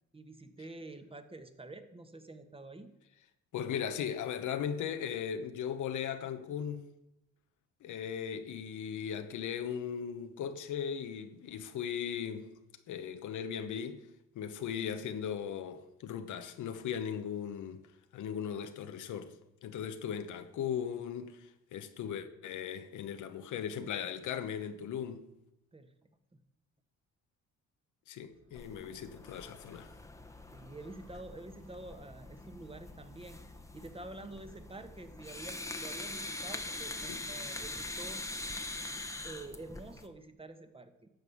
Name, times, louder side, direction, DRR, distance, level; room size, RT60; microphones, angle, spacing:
voice 1, 0.1-2.9 25.7-25.9 26.3-26.4 28.5-28.6 30.5-33.4 33.7-38.2 39.2-41.1, right 2 dB, 20° right, 1.3 m, -48 dB
voice 2, 3.5-6.8 7.8-12.5 12.9-14.1 14.3-17.9 18.1-19.3 19.6-25.3 28.1-29.9 37.1-37.2, left 8 dB, 75° left, 1.1 m, -38 dB
sound 1, 28.3-36.8, left 3 dB, 55° right, 4.7 m, -60 dB
sound 2, 28.6-40.1, left 2 dB, 10° left, 1.1 m, -43 dB
13.0 x 5.5 x 8.4 m
cardioid pair, 90°, 30 cm